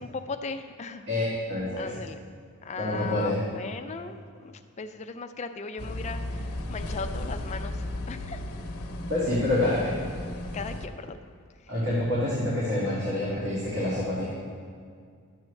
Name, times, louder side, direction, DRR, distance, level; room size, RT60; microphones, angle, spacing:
voice 1, 0.0-1.0 1.8-2.2 2.6-8.4 8.9-9.0 10.5-11.2, left 4 dB, 30° left, 8 dB, 0.4 m, -37 dB
voice 2, 1.1-2.0 2.8-3.4 9.1-10.0 11.7-14.2, left 1 dB, 55° right, -8 dB, 1.9 m, -27 dB
sound 1, 5.8-10.9, left 1 dB, 85° left, 0.7 m, -35 dB
12.0 x 7.3 x 3.2 m, 2.1 s
head